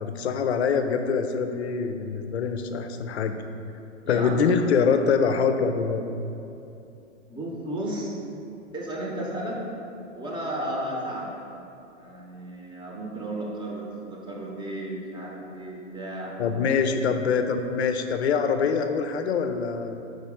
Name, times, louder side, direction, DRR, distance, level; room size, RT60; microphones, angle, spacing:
voice 1, 0.0-3.4 4.1-6.0 16.4-20.0, left 5 dB, 60° left, 8 dB, 0.5 m, -24 dB
voice 2, 4.1-4.8 7.3-8.1 8.7-9.6 10.2-11.4 12.0-16.3, right 1 dB, 10° right, -3 dB, 0.8 m, -33 dB
4.9 x 4.0 x 4.9 m, 2.7 s
figure-of-eight pair, 105°, 36 cm